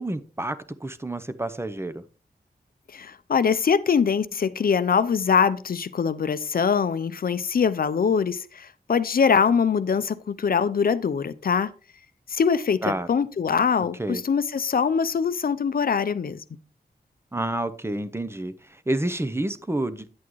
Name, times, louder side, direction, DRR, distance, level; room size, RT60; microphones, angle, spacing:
voice 1, 0.0-2.0 12.8-13.1 14.0-14.2 17.3-20.1, right 1 dB, 15° right, 0.7 m, -29 dB
voice 2, 2.9-11.7 12.3-16.4, left 6 dB, 65° left, 0.5 m, -23 dB
9.5 x 8.4 x 3.1 m
wide cardioid pair, 95°, 17 cm